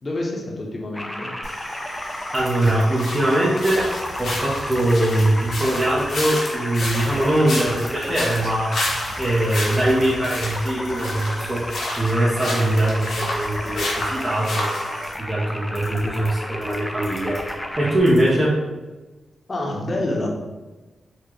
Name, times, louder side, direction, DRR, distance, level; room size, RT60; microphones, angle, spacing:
voice 1, 0.0-1.4 19.5-20.3, left 1 dB, 45° left, 0 dB, 0.9 m, -27 dB
sound 1, 0.9-18.0, left 1 dB, 15° left, 0.5 m, -32 dB
sound 2, 1.4-15.1, left 1 dB, 75° left, 1.0 m, -31 dB
sound 3, 1.9-18.3, equal, 60° right, 1.1 m, -42 dB
voice 2, 2.3-3.9 4.2-8.8 9.2-11.7 12.0-18.6, right 1 dB, 30° right, -7 dB, 0.9 m, -22 dB
4.2 x 2.4 x 3.0 m, 1.2 s
supercardioid pair, 40°, 0 cm